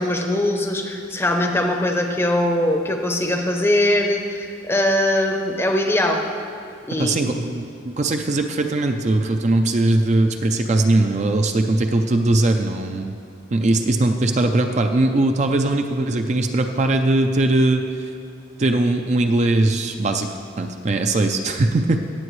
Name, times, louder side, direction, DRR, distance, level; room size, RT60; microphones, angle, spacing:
voice 1, 0.0-6.2 6.9-7.2, left 1 dB, 10° left, 3 dB, 0.7 m, -21 dB
voice 2, 7.0-13.1 13.5-17.8 18.6-20.3 20.6-22.0, right 2 dB, 35° right, 5 dB, 0.4 m, -20 dB
17.5 x 7.4 x 3.1 m, 2.5 s
head